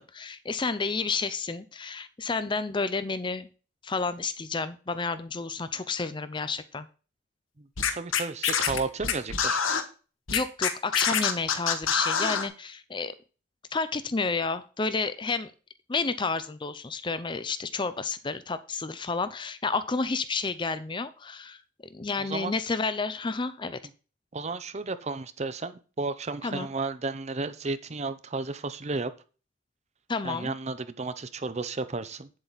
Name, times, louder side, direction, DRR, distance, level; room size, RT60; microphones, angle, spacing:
voice 1, 0.0-3.5 3.8-6.9 10.3-13.1 13.7-15.5 15.9-23.8 26.4-26.7 30.1-30.5, left 4 dB, 25° left, 13 dB, 0.5 m, -31 dB
voice 2, 7.6-9.6 22.2-22.5 24.3-29.1 30.2-32.3, right 3 dB, 35° right, 13 dB, 0.6 m, -33 dB
Scratching (performance technique), 7.8-9.8 10.3-12.5, left 7 dB, 90° left, 1.3 m, -26 dB
8.8 x 7.7 x 4.1 m, 0.35 s
head